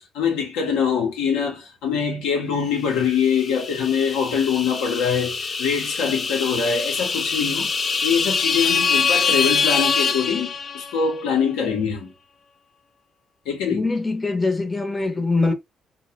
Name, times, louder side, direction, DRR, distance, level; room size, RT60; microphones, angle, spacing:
voice 1, 0.0-12.1 13.5-13.9, left 6 dB, 80° left, 0.7 m, -24 dB
sound 1, 3.1-11.1, left 5 dB, 45° left, 0.4 m, -24 dB
voice 2, 13.7-15.5, left 3 dB, 20° left, 0.8 m, -23 dB
2.3 x 2.1 x 2.9 m
hypercardioid pair, 55°, 0 cm